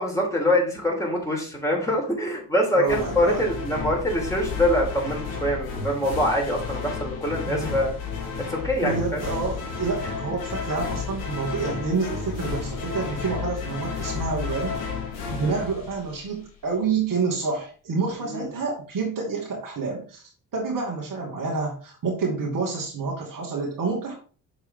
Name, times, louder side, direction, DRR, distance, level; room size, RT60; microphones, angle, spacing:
voice 1, 0.0-7.9 8.5-9.2 15.4-15.6 18.2-18.5, equal, 5° left, -2 dB, 4.1 m, -24 dB
voice 2, 2.7-3.5 7.5-7.7 8.8-14.8 15.3-20.2 20.5-24.1, right 4 dB, 40° right, -2 dB, 2.5 m, -28 dB
sound 1, 2.8-16.5, left 5 dB, 65° left, 2.3 m, -32 dB
7.1 x 6.7 x 3.8 m, 0.39 s
figure-of-eight pair, 50°, 48 cm